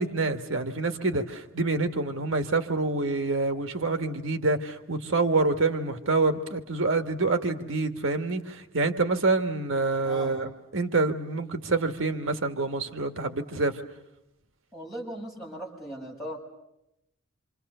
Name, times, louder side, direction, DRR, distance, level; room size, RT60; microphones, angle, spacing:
voice 1, 0.0-13.8, right 3 dB, 70° right, 8 dB, 1.7 m, -27 dB
voice 2, 10.0-10.5 14.7-16.4, right 1 dB, ahead, -3 dB, 7.7 m, -38 dB
28.0 x 27.5 x 6.8 m, 0.86 s
head